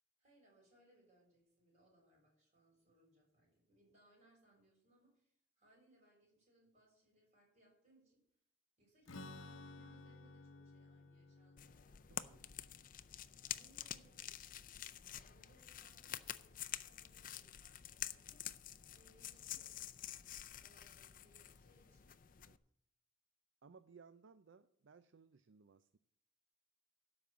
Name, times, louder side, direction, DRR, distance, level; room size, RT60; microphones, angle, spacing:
voice 1, 0.2-8.2 8.8-12.0 13.4-14.4 15.1-18.4 18.8-19.8 20.6-22.1, right 1 dB, 35° right, -1 dB, 6.2 m, -71 dB
Strum, 9.1-14.7, left 2 dB, 75° left, 0.8 m, -56 dB
sound 1, 11.6-22.6, left 11 dB, 40° left, 0.5 m, -49 dB
voice 2, 12.1-12.4 22.5-22.6 23.6-26.0, right 5 dB, 65° right, 11 dB, 0.5 m, -62 dB
12.5 x 5.4 x 8.4 m, 0.72 s
head